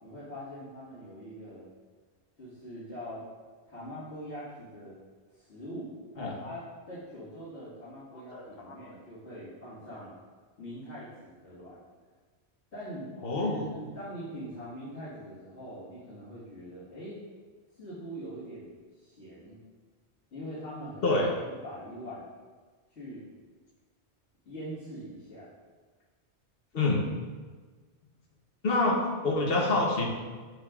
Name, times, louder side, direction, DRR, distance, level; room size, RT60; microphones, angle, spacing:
voice 1, 0.0-1.7 2.4-3.2 3.6-5.0 5.3-10.1 10.6-11.8 12.7-17.2 17.8-19.6 20.3-22.2 22.9-23.2 24.5-25.5, equal, 80° left, -12 dB, 2.1 m, -43 dB
voice 2, 8.1-8.8 13.2-13.7 21.0-21.3 26.7-27.0 28.6-29.0 29.2-30.1, left 2 dB, 60° left, -1 dB, 1.2 m, -27 dB
6.7 x 6.4 x 2.4 m, 1.4 s
omnidirectional pair, 1.1 m